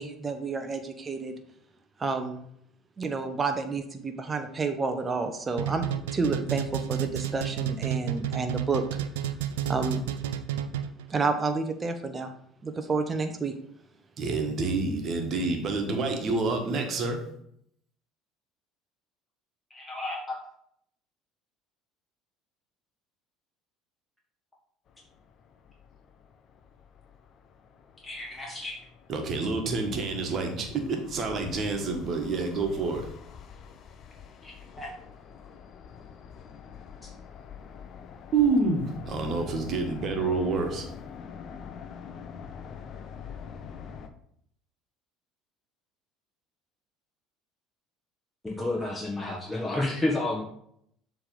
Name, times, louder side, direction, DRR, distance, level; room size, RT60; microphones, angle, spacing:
voice 1, 0.0-1.3 2.0-2.5 3.0-5.9 6.1-8.8 9.7-10.1 11.1-12.3 12.6-13.6, right 4 dB, 25° right, 6 dB, 0.8 m, -30 dB
sound 1, 5.6-11.1, right 10 dB, 75° right, 0.4 m, -30 dB
voice 2, 14.2-17.2 29.1-33.1 38.3-40.9, right 3 dB, 45° right, 3 dB, 1.5 m, -28 dB
voice 3, 19.7-20.4 28.0-28.8 34.4-34.9 48.4-50.4, left 2 dB, 10° left, -3 dB, 1.5 m, -31 dB
sound 2, 24.9-44.1, left 7 dB, 45° left, 0.7 m, -46 dB
7.2 x 3.4 x 5.2 m, 0.70 s
hypercardioid pair, 65°, 0 cm